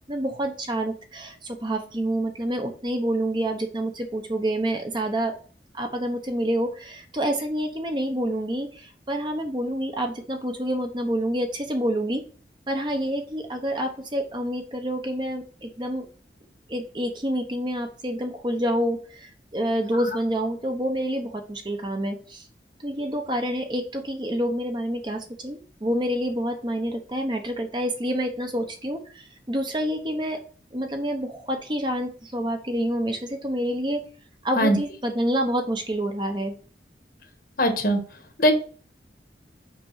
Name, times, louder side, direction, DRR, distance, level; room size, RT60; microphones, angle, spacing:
voice 1, 0.1-5.3 5.7-12.2 12.7-16.0 16.7-22.4 22.8-30.4 30.7-34.0 34.4-36.5, equal, 25° right, 4 dB, 1.0 m, -28 dB
voice 2, 37.6-38.0 38.4-38.5, equal, 55° left, 5 dB, 1.3 m, -20 dB
6.1 x 5.2 x 4.6 m, 0.40 s
head